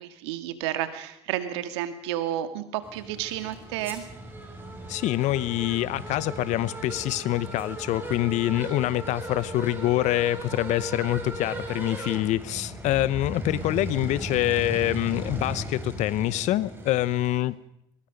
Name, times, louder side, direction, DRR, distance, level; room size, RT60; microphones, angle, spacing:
voice 1, 0.0-4.0, right 12 dB, 75° right, 9 dB, 2.1 m, -31 dB
sound 1, 2.8-17.4, right 2 dB, 15° right, 7.1 m, -37 dB
voice 2, 4.9-17.6, left 15 dB, 55° left, 18 dB, 0.9 m, -26 dB
23.0 x 21.5 x 5.3 m, 0.77 s
hypercardioid pair, 80°, 14 cm